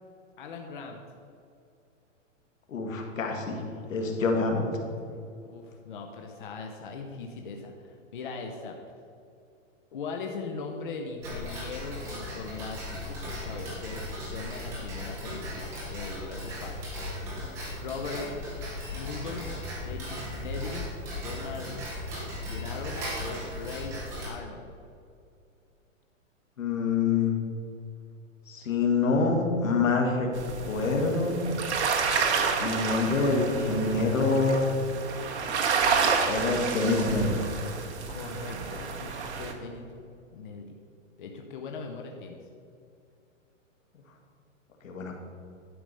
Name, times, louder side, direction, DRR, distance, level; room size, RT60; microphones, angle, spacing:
voice 1, 0.4-1.0 5.4-8.8 9.9-16.8 17.8-18.3 18.9-20.9 21.1-21.8 22.4-23.9 24.3-24.7 38.1-40.0 40.3-40.7 41.2-42.4, left 4 dB, 40° left, 2 dB, 0.7 m, -39 dB
voice 2, 2.7-3.6 3.9-4.7 26.6-27.4 28.5-30.3 30.6-31.3 32.6-34.7 36.3-37.3 44.8-45.1, left 4 dB, 80° left, 2 dB, 1.9 m, -26 dB
Tick-tock, 11.2-24.3, left 1 dB, 5° right, 0.6 m, -37 dB
sound 1, 30.3-39.5, right 5 dB, 55° right, 1.3 m, -29 dB
11.0 x 4.8 x 5.4 m, 2.5 s
hypercardioid pair, 170°, 39 cm